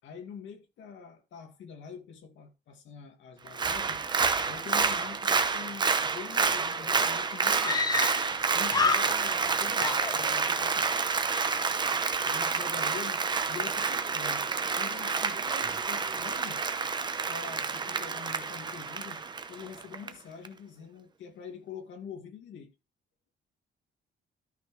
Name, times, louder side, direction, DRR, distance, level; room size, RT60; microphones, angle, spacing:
voice 1, 0.0-4.0 4.5-7.9 8.5-11.1 12.2-16.6 17.3-19.2 19.5-22.7, left 6 dB, 85° left, 2.4 m, -45 dB
Applause, 3.5-20.1 20.4-20.5, right 5 dB, 25° right, 0.8 m, -29 dB
Screaming, 6.5-6.6 6.8-6.9 7.6-8.4 8.7-9.5 9.8-10.7, left 4 dB, 20° left, 0.6 m, -29 dB
13.0 x 6.2 x 3.2 m
cardioid pair, 175°, 19 cm